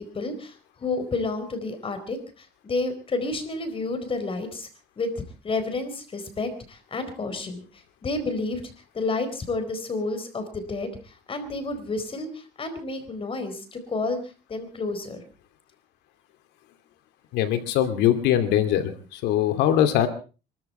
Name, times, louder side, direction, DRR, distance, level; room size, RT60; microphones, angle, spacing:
voice 1, 0.0-4.7 5.0-8.6 8.9-14.2 14.5-15.2, left 3 dB, 30° left, 9 dB, 4.3 m, -30 dB
voice 2, 17.3-20.1, left 11 dB, 90° left, 8 dB, 2.6 m, -22 dB
24.0 x 13.5 x 4.3 m, 0.35 s
cardioid pair, 110°, 17 cm